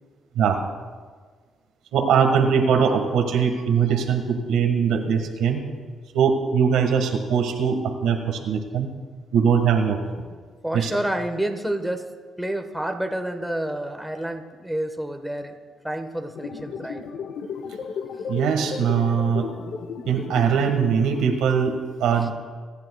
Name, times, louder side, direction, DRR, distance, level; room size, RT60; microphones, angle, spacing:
voice 1, 1.9-5.7 6.1-8.9 9.3-10.0 10.7-10.9 18.2-19.5 20.1-22.3, right 7 dB, 90° right, 4 dB, 1.6 m, -21 dB
voice 2, 10.6-12.0 12.4-15.5 15.8-17.0, right 1 dB, 5° right, 4 dB, 1.1 m, -29 dB
sound 1, 16.4-21.3, left 6 dB, 70° left, 0.8 m, -34 dB
26.5 x 10.5 x 2.3 m, 1.5 s
cardioid pair, 90°, 0 cm